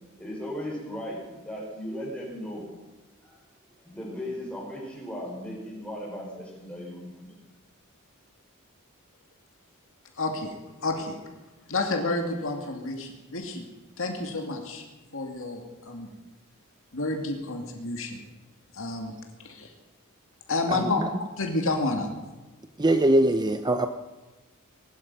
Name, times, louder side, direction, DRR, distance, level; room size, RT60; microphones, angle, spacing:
voice 1, 0.2-2.7 3.2-3.4 3.8-7.4, equal, 5° left, -4 dB, 6.1 m, -37 dB
voice 2, 10.2-10.5 10.8-11.2 11.7-13.7 14.0-14.9 15.1-16.1 16.9-18.2 18.7-19.1 19.4-19.7 20.5-21.0 21.4-22.1, left 2 dB, 65° left, 3 dB, 2.3 m, -30 dB
voice 3, 20.7-21.1 22.8-23.9, right 1 dB, 20° right, 8 dB, 0.7 m, -22 dB
21.0 x 12.0 x 5.5 m, 1.2 s
head